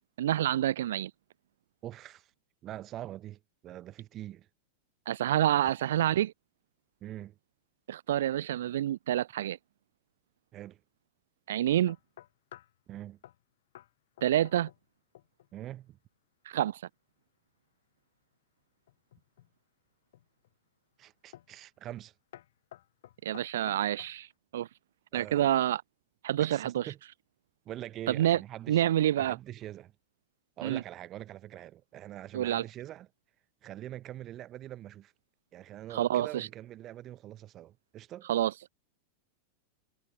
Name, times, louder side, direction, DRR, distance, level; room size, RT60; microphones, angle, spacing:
voice 1, 0.2-1.1 5.1-6.3 7.9-9.6 11.5-12.0 14.2-14.7 16.5-16.8 23.2-24.3 24.5-24.7 25.1-25.8 26.2-26.9 28.1-28.4 28.7-29.4 30.6-30.8 32.3-32.6 35.9-36.5 38.3-38.5, right 12 dB, 60° right, 0.4 m, -27 dB
voice 2, 1.8-2.3 2.6-4.5 7.0-7.3 10.5-10.8 12.9-13.2 15.5-16.0 21.0-22.1 25.1-25.5 26.4-27.0 27.6-28.9 29.2-29.9 30.6-33.1 33.6-35.1 35.5-38.3, right 13 dB, 30° right, 1.1 m, -44 dB
sound 1, 11.9-12.8 13.2-13.4 13.7-13.9 14.2-14.9 15.1-15.5 18.9-19.5 20.1-20.5 21.3-21.6 21.9-22.1 22.3-24.2, left 13 dB, 60° left, 0.7 m, -53 dB
figure-of-eight pair, 90°, 0 cm